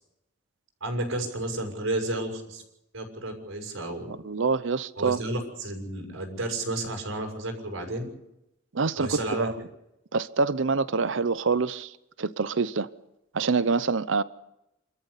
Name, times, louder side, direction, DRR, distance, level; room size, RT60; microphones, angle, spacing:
voice 1, 0.8-2.6 2.9-4.1 5.0-8.1 8.9-9.5, right 2 dB, 85° right, 6.4 m, -32 dB
voice 2, 4.1-5.2 8.7-9.5 10.1-11.9 12.2-12.9 13.3-14.2, right 4 dB, 70° right, 0.7 m, -26 dB
28.0 x 13.5 x 8.2 m
head